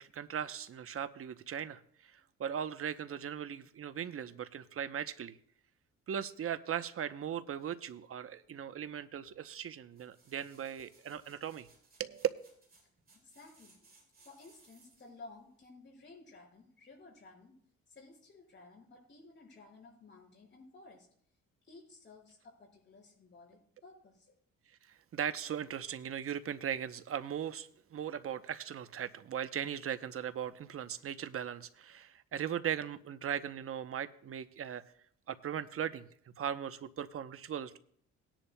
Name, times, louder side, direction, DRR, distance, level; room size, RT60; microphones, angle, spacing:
voice 1, 0.0-5.4 6.1-11.7 12.0-12.3 24.9-34.8 35.3-36.1 36.4-37.8, right 9 dB, 50° right, 0.8 m, -38 dB
sound 1, 9.9-15.2 15.6-15.7, right 3 dB, 30° right, 3.4 m, -65 dB
voice 2, 13.1-13.8 14.2-17.6 17.9-21.1 21.7-24.3, left 3 dB, 40° left, 5.3 m, -55 dB
19.0 x 10.0 x 2.2 m
cardioid pair, 90°, 30 cm